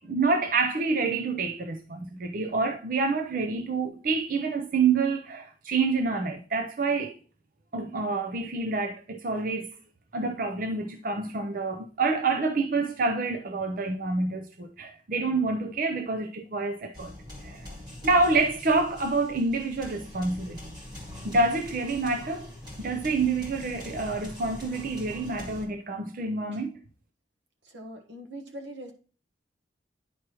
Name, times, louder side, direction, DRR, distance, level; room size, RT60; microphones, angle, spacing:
voice 1, 0.0-7.1 7.7-9.7 10.1-17.1 17.4-17.7 18.0-20.6 21.2-22.5 22.8-26.8, right 3 dB, 50° right, 0.6 m, -27 dB
sound 1, 16.9-25.6, left 1 dB, 25° right, 1.9 m, -43 dB
voice 2, 27.6-28.9, right 1 dB, 90° right, 1.3 m, -42 dB
10.0 x 4.7 x 3.0 m
head